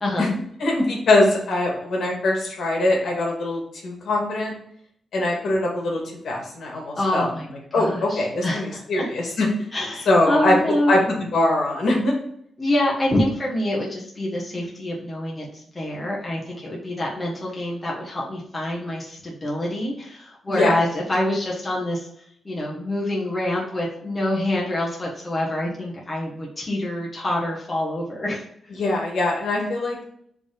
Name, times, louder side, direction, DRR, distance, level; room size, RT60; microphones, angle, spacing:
voice 1, 0.6-4.5 5.1-7.3 7.7-9.5 10.1-10.6 10.9-12.1 20.5-20.7 28.8-30.0, left 2 dB, 65° left, -1 dB, 2.1 m, -22 dB
voice 2, 6.9-7.5 7.7-9.1 9.7-11.0 12.6-22.1 22.4-28.4, left 1 dB, 20° left, -4 dB, 1.5 m, -26 dB
5.0 x 3.6 x 5.3 m, 0.67 s
wide cardioid pair, 135°, 0 cm